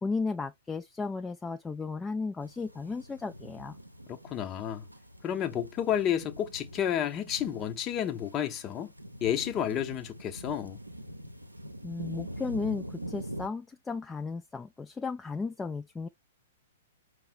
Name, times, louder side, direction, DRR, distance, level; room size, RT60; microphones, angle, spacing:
voice 1, 0.0-3.8 11.8-16.1, left 4 dB, 10° left, 0.3 m, -34 dB
sound 1, 2.4-13.5, equal, 90° right, 0.6 m, -44 dB
voice 2, 4.1-4.8 5.2-8.9 9.2-10.8, left 10 dB, 25° left, 0.7 m, -31 dB
5.5 x 2.1 x 4.3 m
figure-of-eight pair, 110°, 0 cm